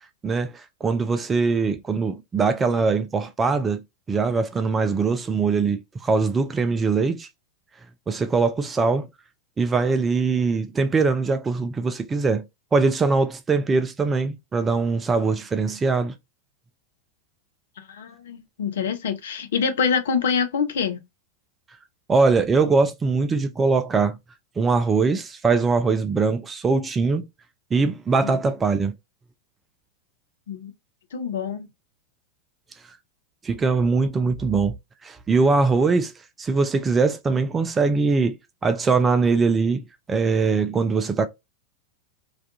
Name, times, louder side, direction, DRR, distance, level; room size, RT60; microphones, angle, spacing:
voice 1, 0.2-7.3 8.1-9.1 9.6-12.4 12.7-16.1 22.1-24.2 24.6-27.2 27.7-28.9 33.4-34.8 35.0-36.1 36.4-41.3, right 4 dB, 15° right, 0.3 m, -22 dB
voice 2, 17.9-21.0 28.2-28.3 30.5-30.7 31.1-31.7, left 6 dB, 60° left, 0.5 m, -25 dB
2.4 x 2.2 x 2.6 m
figure-of-eight pair, 90°, 0 cm